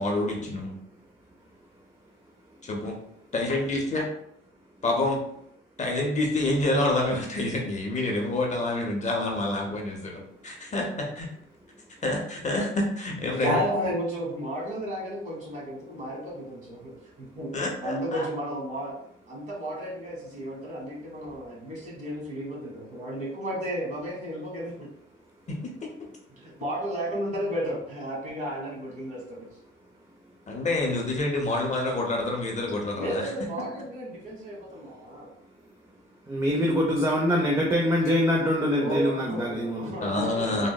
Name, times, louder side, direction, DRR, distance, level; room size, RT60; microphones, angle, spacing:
voice 1, 0.0-0.8 2.7-3.0 3.3-4.1 4.8-5.2 5.8-11.3 12.0-13.6 17.5-18.2 25.5-25.9 30.5-33.3 40.0-40.7, left 2 dB, 35° left, 0 dB, 0.7 m, -27 dB
voice 2, 0.8-2.5 4.7-4.8 10.1-10.7 11.7-12.0 16.9-17.4 19.4-19.5 21.3-21.7 26.1-26.6 29.7-29.9 30.5-30.7 34.8-35.6 36.3-39.9, equal, 15° right, -3 dB, 0.5 m, -28 dB
voice 3, 13.4-16.9 17.2-17.5 17.8-18.9 19.3-24.9 26.4-29.5 31.4-31.6 32.9-35.3 38.8-40.7, equal, 40° right, -3 dB, 1.4 m, -33 dB
3.6 x 2.1 x 2.3 m, 0.72 s
cardioid pair, 90°, 20 cm